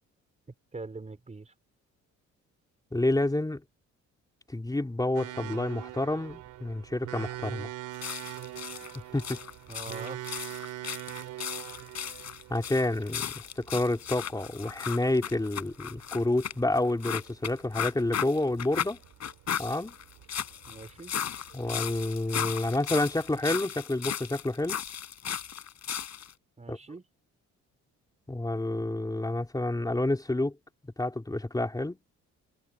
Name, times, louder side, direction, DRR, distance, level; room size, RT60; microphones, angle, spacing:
voice 1, 0.7-1.5 9.7-10.2 20.7-21.1 26.6-27.0, right 3 dB, 25° right, 4.6 m, -42 dB
voice 2, 2.9-3.6 4.5-7.7 9.1-9.4 12.5-13.3 13.6-19.0 19.6-19.9 21.5-24.8 26.7-26.8 28.3-30.6 31.0-32.0, left 2 dB, 10° left, 3.2 m, -29 dB
sound 1, 5.1-23.6, right 15 dB, 90° right, 2.7 m, -44 dB
sound 2, 7.9-26.3, left 9 dB, 60° left, 6.5 m, -36 dB
cardioid pair, 90°, 30 cm